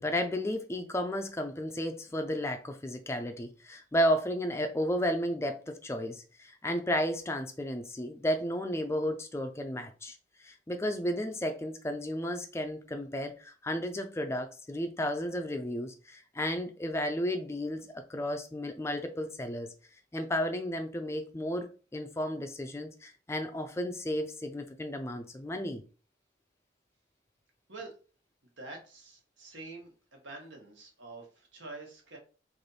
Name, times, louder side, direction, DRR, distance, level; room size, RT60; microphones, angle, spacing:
voice 1, 0.0-10.2 10.4-19.7 20.1-21.7 21.9-25.8, equal, 15° left, 0.4 m, -33 dB
voice 2, 28.6-32.2, right 3 dB, 80° right, 1.3 m, -46 dB
3.3 x 2.6 x 4.0 m
head